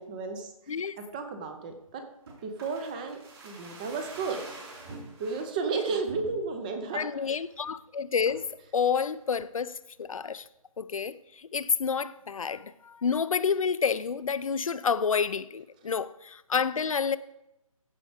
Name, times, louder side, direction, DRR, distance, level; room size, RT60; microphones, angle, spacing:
voice 1, 0.0-2.0 2.4-3.2 3.4-4.4 5.2-7.4, right 4 dB, 15° right, 0.6 m, -33 dB
sound 1, 2.3-5.5 6.1-6.7 7.1-7.2 7.4-7.8 8.3-8.6 9.0-9.7 10.0-10.1, right 2 dB, 45° right, 4.0 m, -46 dB
voice 2, 6.9-8.5 8.7-10.4 10.8-17.2, left 6 dB, 65° left, 0.6 m, -29 dB
15.0 x 5.0 x 4.9 m
figure-of-eight pair, 160°, 19 cm